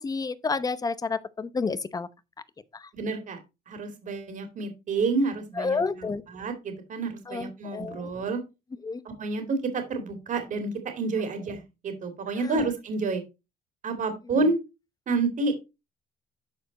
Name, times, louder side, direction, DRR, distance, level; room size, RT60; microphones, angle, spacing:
voice 1, 0.0-2.1 2.7-2.9 5.6-6.2 7.3-8.1 8.8-9.0 12.4-12.7, left 4 dB, 20° left, 0.8 m, -30 dB
voice 2, 2.9-3.4 3.7-8.4 9.0-9.4 9.7-13.2 13.8-14.6 15.1-15.6, right 3 dB, 50° right, 2.5 m, -29 dB
12.0 x 4.3 x 4.0 m
cardioid pair, 110°, 17 cm